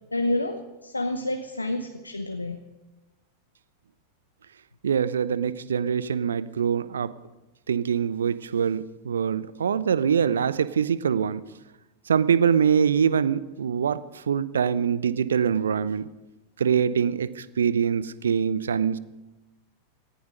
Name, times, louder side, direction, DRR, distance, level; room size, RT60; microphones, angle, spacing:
voice 1, 0.1-2.6, left 1 dB, 80° left, 7 dB, 0.9 m, -29 dB
voice 2, 4.8-7.1 7.7-11.4 12.1-16.1 16.6-19.0, right 7 dB, 70° right, 18 dB, 0.6 m, -24 dB
18.5 x 14.0 x 5.3 m, 1.1 s
figure-of-eight pair, 90°, 0 cm